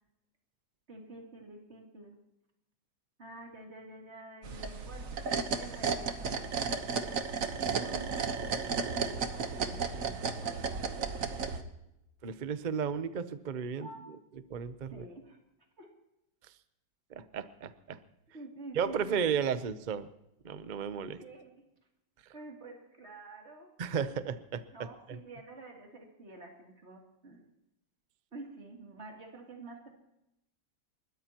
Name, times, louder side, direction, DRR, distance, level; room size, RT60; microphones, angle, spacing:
voice 1, 0.9-2.2 3.2-5.2 5.6-6.5 7.6-11.1 13.8-14.0 14.9-15.4 15.8-15.9 18.3-19.2 21.1-21.7 22.3-23.7 24.7-27.5 28.3-29.9, right 2 dB, 35° right, 0 dB, 3.1 m, -49 dB
sound 1, 4.4-11.6, right 5 dB, 50° right, 1.4 m, -34 dB
voice 2, 12.2-13.9 14.5-15.0 16.4-16.5 17.1-18.0 18.7-20.1 20.4-21.2 22.2-22.3 23.8-24.6 25.1-25.2, right 7 dB, 75° right, 12 dB, 0.4 m, -34 dB
30.0 x 13.5 x 3.0 m, 0.86 s
omnidirectional pair, 2.0 m